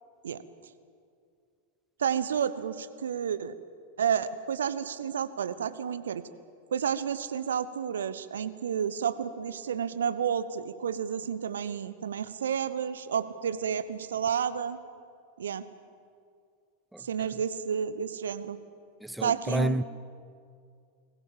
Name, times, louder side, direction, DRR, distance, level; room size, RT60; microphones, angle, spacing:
voice 1, 2.0-3.6 4.0-6.2 6.7-14.8 15.4-15.6 17.0-18.6 19.2-19.8, right 8 dB, 65° right, 1.1 m, -31 dB
voice 2, 16.9-17.3 19.0-19.8, right 1 dB, 5° right, 0.6 m, -30 dB
29.5 x 21.0 x 7.3 m
figure-of-eight pair, 90°, 0 cm